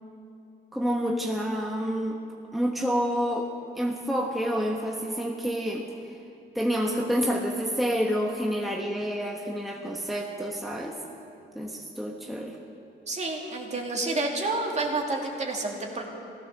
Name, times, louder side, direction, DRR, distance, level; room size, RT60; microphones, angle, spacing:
voice 1, 0.7-2.2 2.5-3.5 3.8-5.9 6.5-11.0 11.5-12.6, equal, ahead, 0 dB, 1.2 m, -28 dB
voice 2, 13.1-16.1, right 2 dB, 35° right, 0 dB, 2.5 m, -29 dB
15.0 x 13.5 x 6.7 m, 2.6 s
cardioid pair, 90°, 20 cm